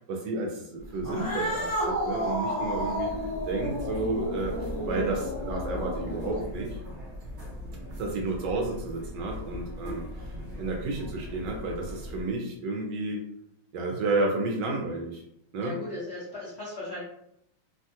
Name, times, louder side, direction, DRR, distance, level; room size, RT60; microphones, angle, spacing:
voice 1, 0.0-3.1 3.5-6.8 8.0-10.3 10.6-13.2 13.7-15.2 15.5-15.7, right 2 dB, 75° right, 0 dB, 1.1 m, -31 dB
Cat, 1.0-6.6, equal, 25° left, 0.8 m, -32 dB
sound 1, 2.8-12.2, left 1 dB, 45° right, 1.1 m, -40 dB
voice 2, 15.6-17.0, left 2 dB, 80° left, -7 dB, 0.6 m, -38 dB
3.2 x 2.2 x 2.7 m, 0.75 s
omnidirectional pair, 2.2 m